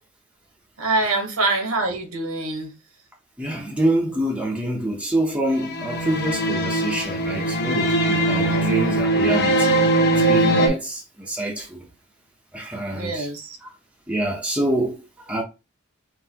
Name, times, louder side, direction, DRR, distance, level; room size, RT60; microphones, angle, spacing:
voice 1, 0.8-2.7 8.4-8.9 12.9-13.6, right 2 dB, 80° right, 1.2 m, -25 dB
voice 2, 3.4-9.8 10.2-11.8 12.5-13.3 13.6-13.7 14.1-15.4, right 1 dB, 5° right, 0.8 m, -26 dB
sound 1, 5.6-10.7, right 1 dB, 50° left, 1.1 m, -20 dB
5.5 x 2.7 x 2.9 m
head